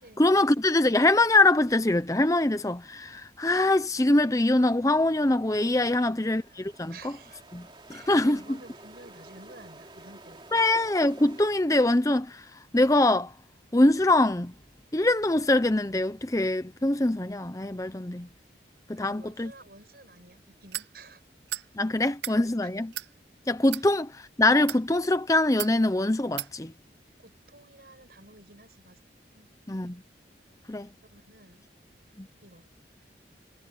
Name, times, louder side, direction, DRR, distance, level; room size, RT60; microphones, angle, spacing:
voice 1, 0.0-6.9 7.5-8.4 10.5-13.3 13.7-14.5 14.9-18.3 18.9-19.5 21.7-22.9 23.5-26.7 29.7-30.0 30.7-30.9 32.2-32.3, left 2 dB, 20° left, 0.7 m, -23 dB
voice 2, 5.9-6.3 6.9-7.4 7.9-10.6 19.0-21.2 21.6-21.7 22.0-22.7 27.2-29.0 29.3-29.5 31.1-31.6 32.4-32.7, right 2 dB, 55° right, 6.6 m, -52 dB
sound 1, 6.3-11.4, right 2 dB, 25° right, 3.4 m, -50 dB
sound 2, 20.7-20.9 21.5-21.7 22.1-22.4 22.9-23.1 23.6-23.9 24.5-24.8 25.6-25.8 26.4-26.5, right 14 dB, 70° right, 0.6 m, -34 dB
head